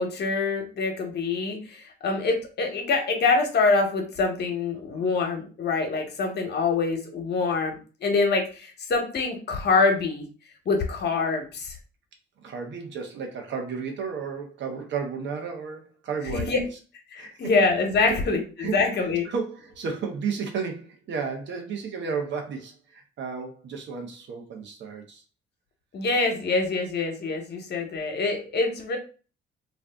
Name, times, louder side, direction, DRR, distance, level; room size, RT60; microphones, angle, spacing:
voice 1, 0.0-10.3 10.7-11.7 16.3-16.6 17.1-19.3 25.9-29.0, left 4 dB, 55° left, 3 dB, 1.0 m, -25 dB
voice 2, 12.4-16.7 17.2-17.4 18.1-18.2 18.6-18.7 19.2-25.2, right 5 dB, 65° right, 3 dB, 0.9 m, -33 dB
2.5 x 2.4 x 3.4 m, 0.36 s
cardioid pair, 90°, 20 cm